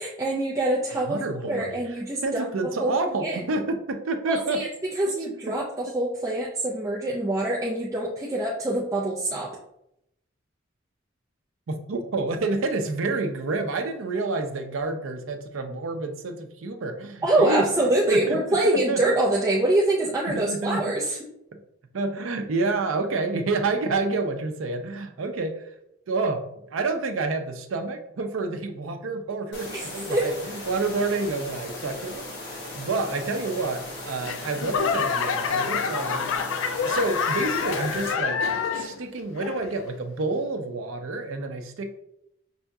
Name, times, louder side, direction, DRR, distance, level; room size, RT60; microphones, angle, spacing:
voice 1, 0.0-1.2 1.5-2.5 2.8-3.4 4.3-4.7 4.9-9.6 17.2-21.2 29.7-30.3, right 1 dB, 15° right, -5 dB, 0.4 m, -25 dB
voice 2, 1.1-1.8 2.2-4.7 5.1-5.2 5.5-5.7 11.7-17.6 18.1-19.0 20.3-20.8 21.5-21.6 21.9-25.6 26.1-26.4 26.7-36.3 36.8-38.5 38.7-42.0, right 3 dB, 85° right, 7 dB, 0.5 m, -29 dB
sound 1, 29.5-38.1, left 2 dB, 55° left, 1.0 m, -37 dB
Laughter / Clapping / Crowd, 34.2-39.0 39.4-39.9 40.5-40.6, left 6 dB, 75° left, 0.3 m, -27 dB
5.5 x 2.7 x 2.3 m, 0.81 s
head